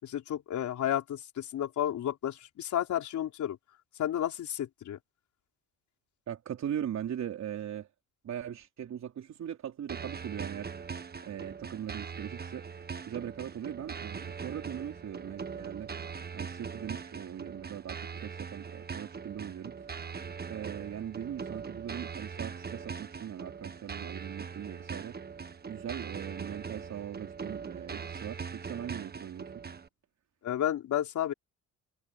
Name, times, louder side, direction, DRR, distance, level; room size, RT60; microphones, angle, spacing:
voice 1, 0.0-3.6 4.0-5.0 30.4-31.3, left 11 dB, 70° left, 4.4 m, -32 dB
voice 2, 6.3-7.9 8.2-10.7 11.2-12.7 13.1-15.9 16.3-19.9 20.5-25.3 25.7-29.6, right 9 dB, 60° right, 3.5 m, -40 dB
sound 1, 9.9-29.9, right 6 dB, 30° right, 1.5 m, -41 dB
cardioid pair, 90°, 30 cm